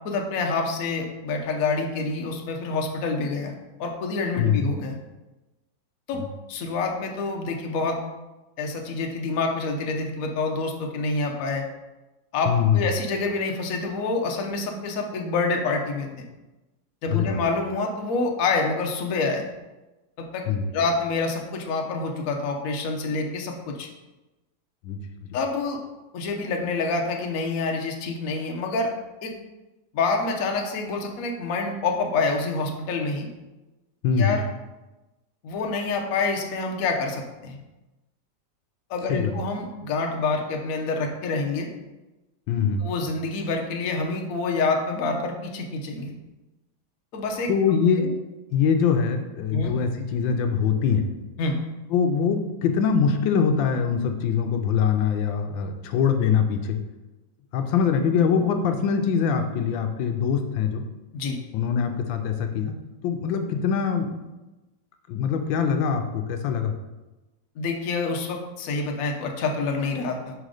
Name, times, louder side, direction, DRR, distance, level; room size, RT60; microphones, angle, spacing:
voice 1, 0.0-3.5 3.8-5.0 6.1-6.2 6.5-8.0 8.6-11.6 12.3-16.3 17.0-19.4 20.2-20.4 20.7-23.9 25.3-25.8 26.1-28.9 29.2-29.3 29.9-33.3 34.2-34.4 35.4-37.6 38.9-41.7 42.8-46.1 47.1-47.5 48.0-48.1 49.5-49.7 51.4-51.6 61.1-61.4 67.6-70.3, left 3 dB, 60° left, 2 dB, 1.0 m, -27 dB
voice 2, 4.4-4.7 6.1-6.3 12.5-12.8 17.1-17.4 20.5-20.7 24.8-25.0 25.3-25.4 34.0-34.4 39.1-39.4 42.5-42.8 47.5-48.1 48.5-51.1 51.9-56.8 57.5-60.8 61.5-62.7 63.0-64.2 65.1-66.7, left 6 dB, 85° left, 6 dB, 1.4 m, -23 dB
5.8 x 3.9 x 4.9 m, 1.1 s
omnidirectional pair, 2.1 m